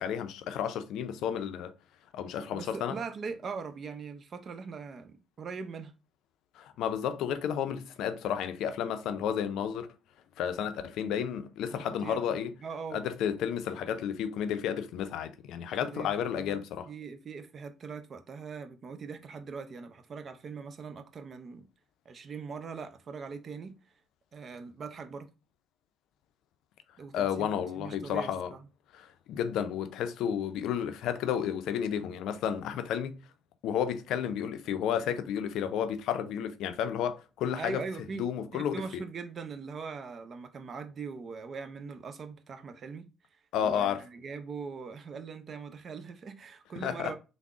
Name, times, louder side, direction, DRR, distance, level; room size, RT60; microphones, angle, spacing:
voice 1, 0.0-1.7 2.1-2.9 6.6-9.9 10.4-12.5 12.9-16.9 27.1-28.5 29.0-33.2 33.6-37.8 38.2-39.0 43.5-44.0 46.8-47.1, left 8 dB, 75° left, 0.4 m, -32 dB
voice 2, 2.4-5.9 11.7-13.0 15.7-16.6 16.9-21.7 22.0-24.0 24.3-25.3 27.0-28.7 37.6-47.1, right 5 dB, 50° right, 0.5 m, -41 dB
3.5 x 2.0 x 3.5 m
hypercardioid pair, 55°, 0 cm